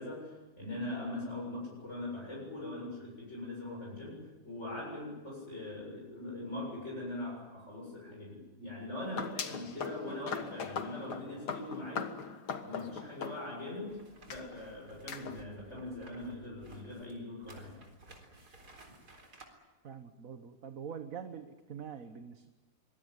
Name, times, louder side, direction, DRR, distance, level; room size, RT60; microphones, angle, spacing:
voice 1, 0.0-12.1 12.6-14.0 14.3-17.8, left 1 dB, 45° left, -3 dB, 8.0 m, -41 dB
sound 1, 9.0-13.8 14.3-14.4 15.1-15.4, left 6 dB, 90° left, 2.1 m, -40 dB
sound 2, 13.9-19.5, right 2 dB, 80° right, 4.5 m, -56 dB
voice 2, 19.8-22.5, right 7 dB, 60° right, 8 dB, 1.6 m, -44 dB
24.0 x 22.0 x 9.9 m, 1.2 s
omnidirectional pair, 1.7 m